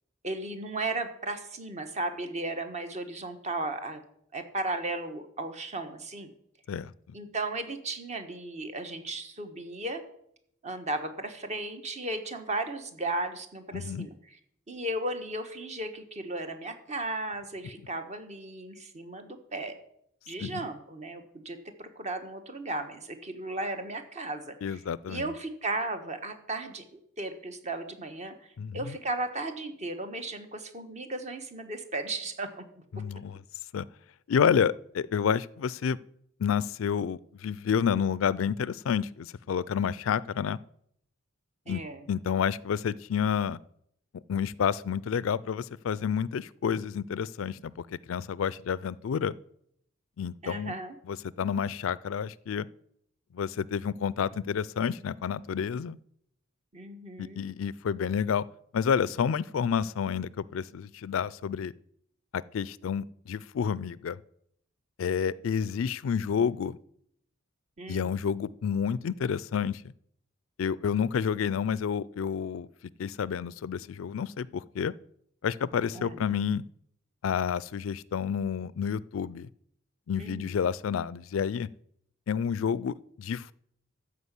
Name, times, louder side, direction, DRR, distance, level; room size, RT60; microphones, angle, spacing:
voice 1, 0.2-4.0 4.3-6.3 7.1-10.0 10.6-14.1 14.7-19.7 20.3-24.8 25.1-26.8 27.2-32.6 41.7-42.1 50.4-51.0 56.7-57.4 67.8-68.1 75.9-76.2 80.2-80.5, right 2 dB, 35° right, 1.3 m, -35 dB
voice 2, 13.7-14.1 20.4-20.6 24.6-25.3 28.6-29.0 32.9-33.4 33.7-33.9 34.3-36.0 36.4-40.6 41.7-41.8 42.1-43.6 44.3-49.3 50.2-50.7 51.1-52.7 53.3-56.0 57.2-58.4 58.7-61.7 62.3-64.2 65.0-66.8 67.9-69.8 70.6-72.7 73.0-74.9 75.4-76.6 77.2-79.5 80.1-81.7 82.3-83.5, left 7 dB, 80° left, 0.4 m, -29 dB
13.5 x 5.0 x 8.3 m
head